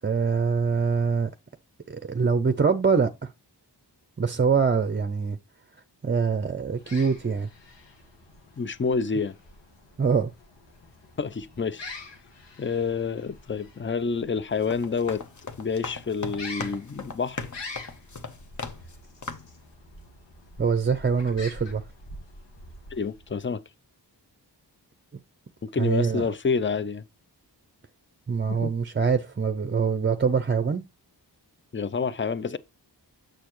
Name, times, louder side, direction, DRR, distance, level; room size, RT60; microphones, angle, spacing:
voice 1, 0.0-1.3 1.9-3.3 4.2-5.4 6.0-7.5 10.0-10.3 20.6-21.8 25.8-26.3 28.3-30.8, right 5 dB, 25° right, 0.6 m, -24 dB
sound 1, 6.7-23.4, left 2 dB, 90° left, 1.6 m, -46 dB
voice 2, 8.6-9.3 11.2-11.9 12.6-15.2 15.6-17.4 22.9-23.6 25.7-27.0 28.5-28.7 31.7-32.6, left 5 dB, 30° left, 0.6 m, -28 dB
sound 2, 14.5-19.0 19.2-19.6, left 4 dB, 45° left, 1.1 m, -38 dB
7.7 x 6.7 x 3.1 m
wide cardioid pair, 80°, 42 cm